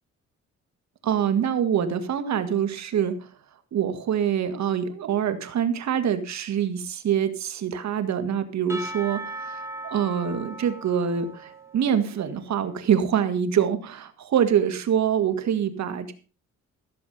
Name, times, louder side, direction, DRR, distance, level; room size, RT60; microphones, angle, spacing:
voice 1, 1.0-3.3 3.7-16.1, right 8 dB, 65° right, 9 dB, 1.9 m, -25 dB
Percussion / Church bell, 8.7-12.3, right 2 dB, 10° right, 2.8 m, -38 dB
15.0 x 7.3 x 5.3 m, 0.36 s
cardioid pair, 90°, 30 cm